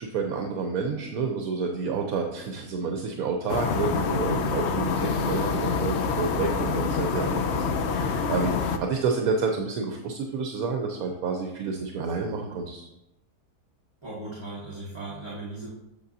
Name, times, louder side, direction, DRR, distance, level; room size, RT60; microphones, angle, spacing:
voice 1, 0.0-12.9, right 4 dB, 70° right, 3 dB, 1.1 m, -29 dB
sound 1, 3.5-8.8, left 5 dB, 65° left, 0.6 m, -26 dB
voice 2, 14.0-15.7, right 2 dB, 20° right, -5 dB, 1.1 m, -37 dB
7.8 x 6.6 x 2.7 m, 0.89 s
omnidirectional pair, 1.7 m